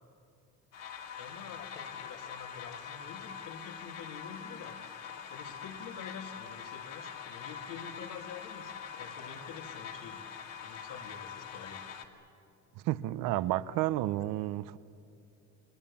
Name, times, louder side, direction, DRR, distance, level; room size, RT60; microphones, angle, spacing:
sound 1, 0.7-12.1, left 7 dB, 55° left, 2.3 m, -44 dB
voice 1, 1.2-4.8 5.3-10.3 10.6-11.9, left 6 dB, 80° left, 3.0 m, -47 dB
voice 2, 12.8-14.8, right 15 dB, 85° right, 0.9 m, -31 dB
29.0 x 23.5 x 7.2 m
cardioid pair, 170°, 32 cm